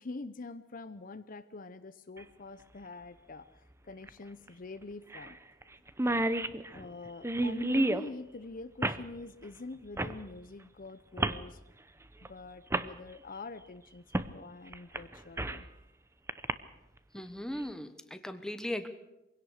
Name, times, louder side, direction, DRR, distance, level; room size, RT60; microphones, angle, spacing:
voice 1, 0.0-5.4 6.6-11.6 12.2-14.0 14.3-15.7 17.1-17.2, left 3 dB, 45° left, 12 dB, 0.7 m, -45 dB
sound 1, 2.2-2.3 4.0-4.1 4.5-4.6 5.1-5.3 5.6-5.7 5.9-8.1 8.8-9.0 10.0-10.2 11.2-11.4 12.2-12.3 12.7-12.9 14.1-14.3 14.7-15.7 16.3-16.5, right 1 dB, 15° right, 0.7 m, -30 dB
voice 2, 17.1-18.9, left 1 dB, 5° left, 9 dB, 1.2 m, -38 dB
23.5 x 17.5 x 6.5 m, 0.93 s
head